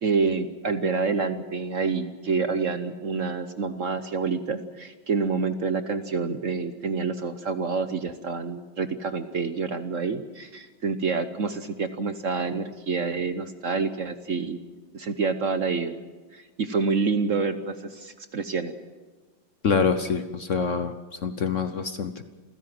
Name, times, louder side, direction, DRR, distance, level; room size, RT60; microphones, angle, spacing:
voice 1, 0.0-14.6 14.9-15.9 16.3-18.7, right 4 dB, 50° right, 10 dB, 1.1 m, -27 dB
voice 2, 19.6-22.2, left 5 dB, 50° left, 10 dB, 1.0 m, -26 dB
27.5 x 15.5 x 7.7 m, 1.3 s
omnidirectional pair, 2.0 m